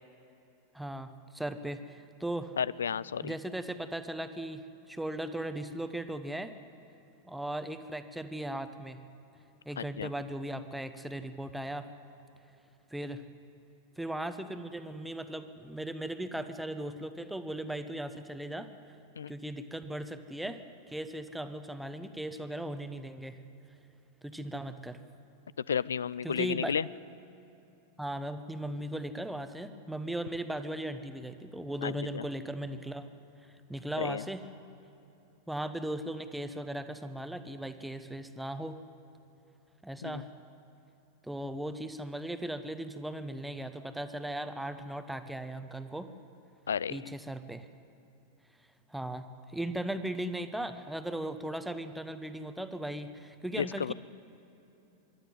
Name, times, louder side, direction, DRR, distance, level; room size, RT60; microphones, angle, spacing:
voice 1, 0.7-2.6 3.2-6.5 7.2-9.0 9.7-11.9 12.9-13.2 14.0-18.7 19.3-20.6 20.9-23.4 24.2-25.0 26.2-26.7 28.0-33.1 33.4-34.4 35.5-38.8 39.8-40.3 41.2-46.1 46.9-47.7 48.9-53.9, right 1 dB, 5° right, 9 dB, 1.1 m, -37 dB
voice 2, 2.6-3.3 9.8-10.1 19.2-19.3 25.7-26.9 31.8-32.2 34.0-34.2 40.0-40.2 46.7-47.0 53.5-53.9, left 7 dB, 70° left, 21 dB, 0.4 m, -32 dB
25.0 x 12.0 x 9.4 m, 3.0 s
figure-of-eight pair, 90°, 0 cm